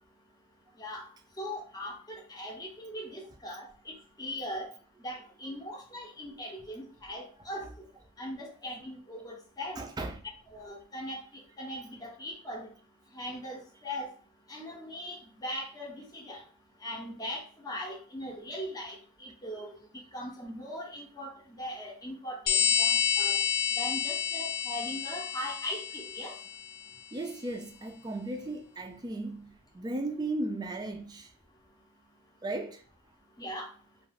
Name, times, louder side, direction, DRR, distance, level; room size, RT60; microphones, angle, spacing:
voice 1, 1.4-4.7 5.0-7.6 8.2-9.9 10.5-12.7 13.1-14.1 14.5-16.4 16.8-19.7 20.1-23.4 23.8-26.3 33.4-33.7, equal, 15° left, 0.6 m, -40 dB
voice 2, 9.8-10.2 27.1-31.3 32.4-32.8, right 2 dB, 20° right, 0.3 m, -36 dB
sound 1, 22.5-26.7, left 8 dB, 85° left, 0.4 m, -29 dB
2.4 x 2.3 x 3.2 m
head